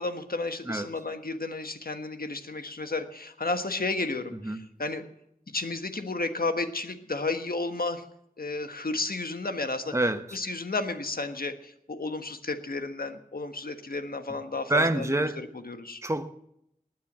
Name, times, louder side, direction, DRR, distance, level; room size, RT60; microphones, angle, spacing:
voice 1, 0.0-5.0 5.5-8.0 8.4-9.9 10.3-16.0, left 3 dB, 85° left, 1.4 m, -32 dB
voice 2, 9.9-10.4 14.7-15.4 16.0-16.3, right 2 dB, 20° right, 1.1 m, -26 dB
19.5 x 9.5 x 7.4 m
wide cardioid pair, 45°, 15 cm